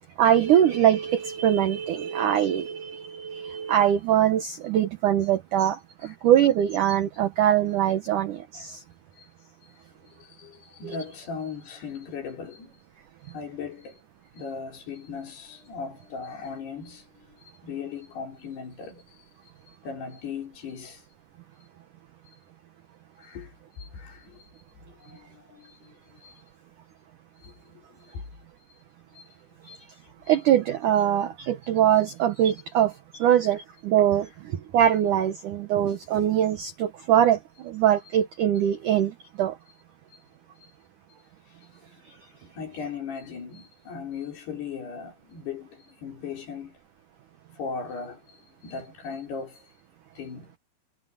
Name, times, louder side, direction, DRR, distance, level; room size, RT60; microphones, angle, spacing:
voice 1, 0.2-8.8 10.8-11.0 30.3-32.9 33.2-39.6, right 10 dB, 80° right, 1.8 m, -22 dB
voice 2, 10.2-12.8 13.3-14.0 14.3-17.0 17.6-19.1 19.8-21.0 23.2-23.5 23.8-24.4 25.0-25.9 26.2-26.3 27.4-27.9 28.1-28.2 29.1-29.2 29.7-29.8 30.3-30.4 42.6-46.8 47.6-48.4 48.6-49.6 50.2-50.5, left 5 dB, 60° left, 6.9 m, -38 dB
omnidirectional pair, 5.2 m